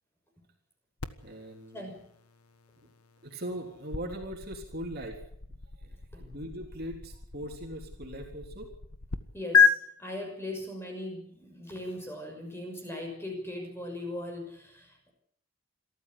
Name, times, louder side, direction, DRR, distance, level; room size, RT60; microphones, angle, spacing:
sound 1, 1.0-9.2 9.5-9.7, left 6 dB, 90° left, 1.4 m, -31 dB
voice 1, 1.2-1.9 2.8-2.9 3.2-5.2 5.8-8.7, equal, 45° right, 2 dB, 3.6 m, -40 dB
voice 2, 1.7-2.1 6.1-6.3 9.3-15.1, left 1 dB, 10° left, 3 dB, 6.1 m, -39 dB
27.0 x 14.0 x 8.5 m, 0.68 s
head